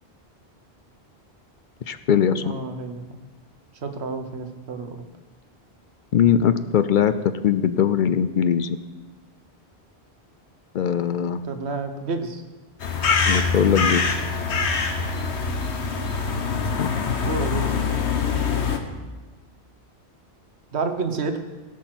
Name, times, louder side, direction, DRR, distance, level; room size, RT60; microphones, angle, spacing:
voice 1, 1.9-2.4 6.1-7.1 7.4-8.8 10.7-11.4 13.3-14.0 16.8-16.9, left 8 dB, 60° left, 12 dB, 0.6 m, -20 dB
voice 2, 2.4-3.2 3.8-5.0 11.4-12.4 17.0-17.9 20.7-21.4, right 4 dB, 75° right, 7 dB, 1.3 m, -30 dB
sound 1, 12.8-18.8, left 5 dB, 80° left, 1.3 m, -24 dB
16.5 x 6.2 x 6.0 m, 1.2 s
omnidirectional pair, 1.1 m